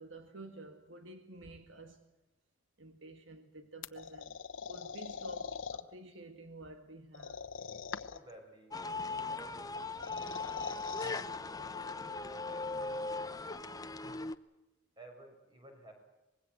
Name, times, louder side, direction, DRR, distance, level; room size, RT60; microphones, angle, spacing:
voice 1, 0.0-2.0 2.8-7.4, right 2 dB, 75° right, 1.9 m, -51 dB
sound 1, 3.8-5.8 7.1-8.3 9.8-11.2, left 6 dB, 85° left, 1.1 m, -42 dB
voice 2, 8.1-11.8 12.3-13.1 15.0-15.9, right 1 dB, 25° right, 6.0 m, -56 dB
sound 2, 8.7-14.3, left 3 dB, 20° left, 0.8 m, -39 dB
25.0 x 21.0 x 7.8 m
head